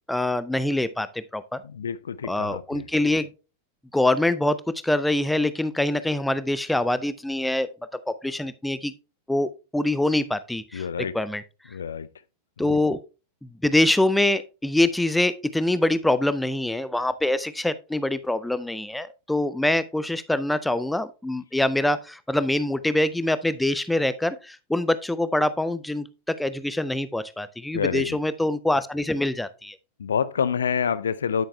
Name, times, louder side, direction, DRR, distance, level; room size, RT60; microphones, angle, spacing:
voice 1, 0.1-1.6 2.3-3.3 3.9-4.6 4.8-7.7 8.1-8.9 9.3-10.9 11.1-11.4 12.6-13.0 13.4-29.8, left 1 dB, 5° left, 0.4 m, -24 dB
voice 2, 1.6-2.8 10.7-11.1 11.7-12.1 12.6-12.8 27.7-28.2 30.0-31.4, left 7 dB, 70° left, 0.5 m, -27 dB
9.5 x 8.6 x 2.2 m
figure-of-eight pair, 90°, 0 cm